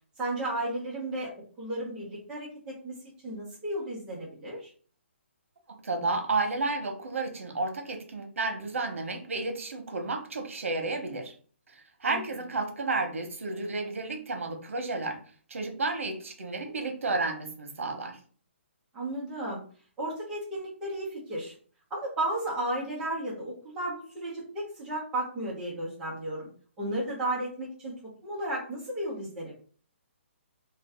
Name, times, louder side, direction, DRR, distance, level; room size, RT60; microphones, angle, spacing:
voice 1, 0.2-1.3 1.6-3.0 3.2-4.7 12.1-12.2 18.9-19.6 20.0-21.5 21.9-26.5 26.8-29.5, right 1 dB, 10° right, -6 dB, 0.8 m, -34 dB
voice 2, 5.8-11.3 11.7-15.2 15.5-18.2, right 3 dB, 85° right, 4 dB, 0.9 m, -32 dB
2.6 x 2.3 x 3.4 m, 0.44 s
hypercardioid pair, 175°, 7 cm